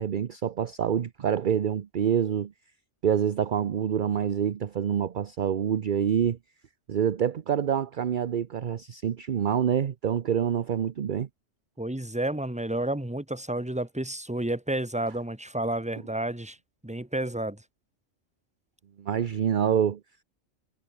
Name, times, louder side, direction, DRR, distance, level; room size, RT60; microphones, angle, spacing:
voice 1, 0.0-2.5 3.0-6.4 6.9-11.3 19.0-20.0, right 8 dB, 50° right, 0.8 m, -26 dB
voice 2, 11.8-16.6 16.8-17.6, right 1 dB, 5° right, 1.7 m, -30 dB
omnidirectional pair, 1.3 m